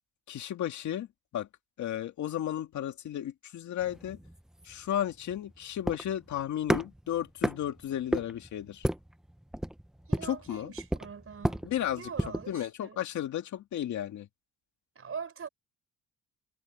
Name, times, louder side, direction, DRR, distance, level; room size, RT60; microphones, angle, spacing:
voice 1, 0.3-1.1 1.3-1.5 1.8-4.2 4.6-8.9 10.2-10.7 11.6-12.0 12.5-14.3, left 11 dB, 70° left, 2.1 m, -34 dB
sound 1, 3.8-12.5, equal, ahead, 0.7 m, -34 dB
voice 2, 10.1-11.6 11.9-13.0 15.0-15.5, right 6 dB, 45° right, 5.1 m, -42 dB
cardioid pair, 90°, 30 cm